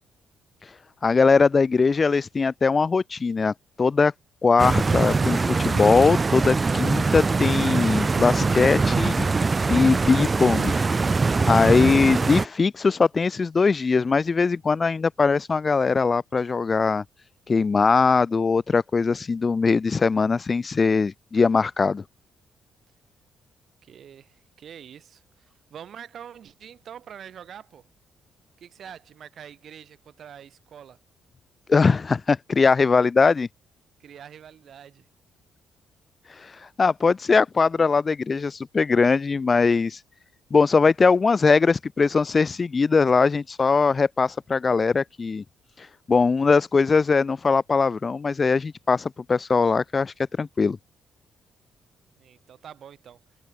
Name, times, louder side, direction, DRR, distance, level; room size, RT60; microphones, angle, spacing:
voice 1, 1.0-4.1 4.4-9.3 9.7-10.7 11.4-17.0 17.5-22.0 31.7-33.5 36.4-36.5 36.8-40.0 40.5-45.4 46.1-50.8, left 4 dB, 35° left, 0.6 m, -21 dB
Stream, 4.6-12.4, right 4 dB, 30° right, 0.4 m, -22 dB
voice 2, 23.8-27.9 28.6-31.0 34.0-35.1 52.2-53.2, right 9 dB, 60° right, 3.3 m, -45 dB
cardioid pair, 90°, 0 cm